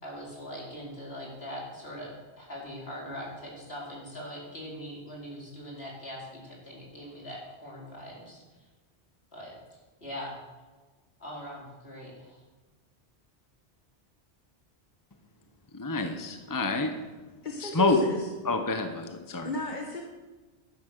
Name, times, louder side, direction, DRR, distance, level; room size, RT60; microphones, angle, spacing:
voice 1, 0.0-8.4 9.3-9.5 10.0-10.4 11.2-12.4, equal, 70° left, -4 dB, 4.5 m, -41 dB
voice 2, 15.7-16.9 17.6-18.0 18.4-19.5, left 3 dB, 20° left, 6 dB, 0.9 m, -27 dB
voice 3, 17.4-18.3 19.4-20.0, left 1 dB, 45° left, 1 dB, 1.4 m, -35 dB
11.5 x 10.5 x 6.7 m, 1.3 s
omnidirectional pair, 1.1 m